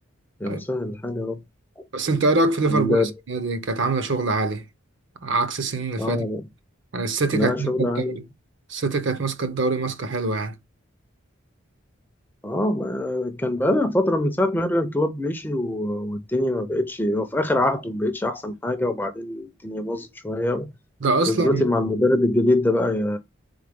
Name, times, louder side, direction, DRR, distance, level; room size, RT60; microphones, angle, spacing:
voice 1, 0.4-1.4 2.7-3.1 6.0-6.4 7.3-8.2 12.4-20.7 21.3-23.2, left 1 dB, 10° left, 0.4 m, -24 dB
voice 2, 1.9-3.0 3.3-4.6 5.2-6.2 6.9-8.2 8.7-10.5 21.0-21.6, right 3 dB, 60° right, 0.7 m, -24 dB
3.8 x 3.4 x 3.4 m
head